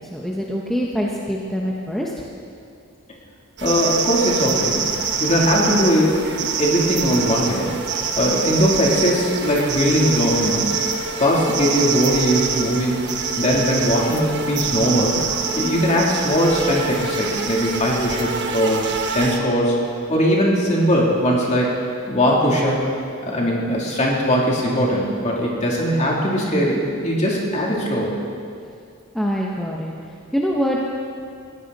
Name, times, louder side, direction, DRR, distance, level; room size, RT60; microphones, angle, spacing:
voice 1, 0.0-2.2 29.1-29.9 30.3-30.8, equal, ahead, -3 dB, 1.1 m, -24 dB
voice 2, 3.6-4.8 5.2-7.7 8.2-10.7 11.2-13.0 13.4-15.2 15.5-19.7 20.1-21.7 22.1-22.8 23.2-28.2, equal, 35° left, -3 dB, 3.2 m, -20 dB
sound 1, 3.6-19.4, right 5 dB, 55° right, 1.4 m, -25 dB
20.5 x 16.0 x 4.2 m, 2.4 s
head